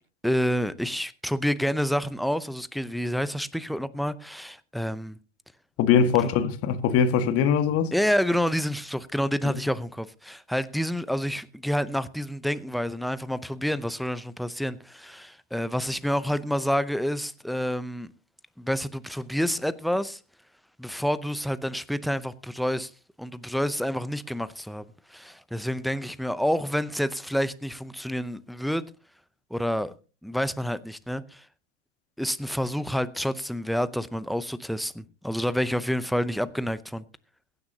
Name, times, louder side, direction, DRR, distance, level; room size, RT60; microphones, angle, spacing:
voice 1, 0.2-5.2 6.2-6.4 7.9-18.1 18.6-20.2 20.8-22.9 23.2-24.8 25.1-28.8 29.5-29.9 30.2-31.5 32.2-37.0, equal, ahead, 0.6 m, -28 dB
voice 2, 5.8-7.9, left 7 dB, 40° left, 1.8 m, -22 dB
22.5 x 9.5 x 2.8 m
hypercardioid pair, 100°, 36 cm